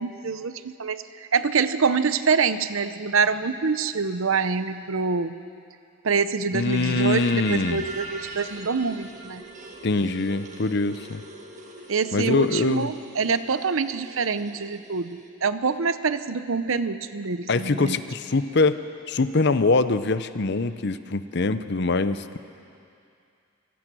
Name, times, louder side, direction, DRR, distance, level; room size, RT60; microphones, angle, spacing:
voice 1, 0.0-5.4 6.0-9.4 11.9-18.0, right 5 dB, 70° right, 12 dB, 0.8 m, -25 dB
voice 2, 6.5-7.8 9.8-11.2 12.1-12.9 17.5-18.8 19.1-22.4, left 3 dB, 50° left, 12 dB, 0.7 m, -23 dB
sound 1, 6.5-15.3, right 2 dB, 35° right, 1.7 m, -41 dB
28.0 x 16.5 x 6.2 m, 2.5 s
head